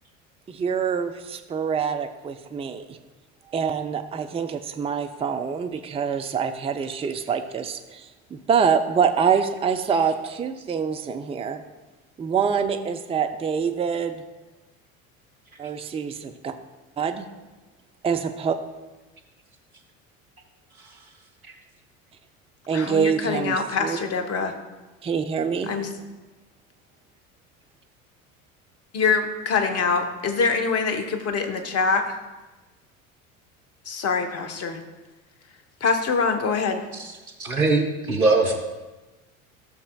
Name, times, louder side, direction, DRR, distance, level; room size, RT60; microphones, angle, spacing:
voice 1, 0.5-3.0 3.5-11.6 12.2-14.2 15.6-16.5 17.0-17.3 18.0-18.6 22.7-24.0 25.0-25.7, right 6 dB, 15° right, 7 dB, 0.5 m, -25 dB
voice 2, 22.7-24.5 25.7-25.9 28.9-32.2 33.9-34.8 35.8-36.8, left 5 dB, 35° left, 6 dB, 1.1 m, -24 dB
voice 3, 37.4-38.6, right 3 dB, 90° right, 2 dB, 1.1 m, -21 dB
14.5 x 6.8 x 2.3 m, 1.1 s
figure-of-eight pair, 65°, 42 cm